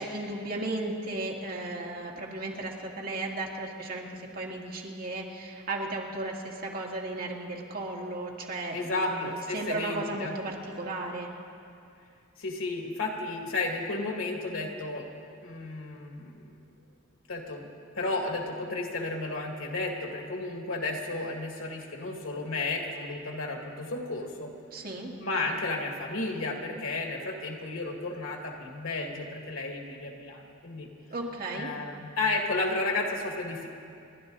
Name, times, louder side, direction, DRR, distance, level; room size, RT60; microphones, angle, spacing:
voice 1, 0.0-4.1 4.3-11.3 24.7-25.1 31.1-31.7, right 2 dB, 45° right, -1 dB, 2.0 m, -35 dB
voice 2, 8.7-10.4 12.4-15.1 15.4-16.6 17.3-17.7 17.9-24.5 25.2-30.9 31.5-33.7, left 2 dB, 85° left, 2 dB, 2.1 m, -33 dB
28.5 x 11.5 x 4.0 m, 2.5 s
head